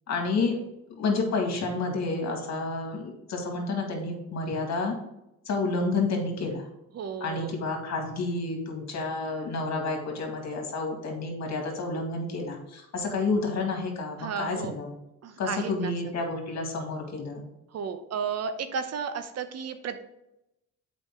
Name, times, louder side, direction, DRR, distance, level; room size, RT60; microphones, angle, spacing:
voice 1, 0.1-0.6 0.9-4.9 5.5-6.7 7.2-15.0 15.4-17.4, left 3 dB, 60° left, 2 dB, 2.0 m, -30 dB
voice 2, 6.9-7.5 14.2-14.7 15.2-15.9 17.7-20.0, right 6 dB, 55° right, 9 dB, 0.8 m, -33 dB
7.5 x 5.1 x 3.7 m, 0.88 s
cardioid pair, 90°, 30 cm